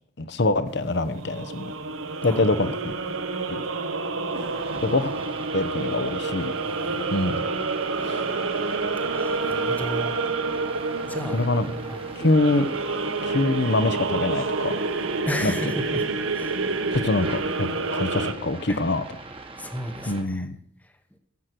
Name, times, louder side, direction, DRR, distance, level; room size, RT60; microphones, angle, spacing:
voice 1, 0.2-1.7 2.2-2.9 4.8-5.1 5.5-6.5 7.1-7.5 8.0-8.3 11.3-11.7 12.2-12.7 13.2-14.8 15.4-15.5 16.9-19.0 20.1-20.6, left 2 dB, 55° left, 13 dB, 0.9 m, -24 dB
sound 1, 0.7-18.3, right 3 dB, 70° right, 1.1 m, -28 dB
sound 2, 4.3-20.2, right 3 dB, 25° right, 1.3 m, -42 dB
voice 2, 6.6-7.0 8.5-10.6 11.0-11.4 11.9-12.1 15.2-16.7 18.7-18.8 19.6-20.5, left 1 dB, 5° left, 7 dB, 1.0 m, -34 dB
14.5 x 8.0 x 6.1 m, 0.69 s
head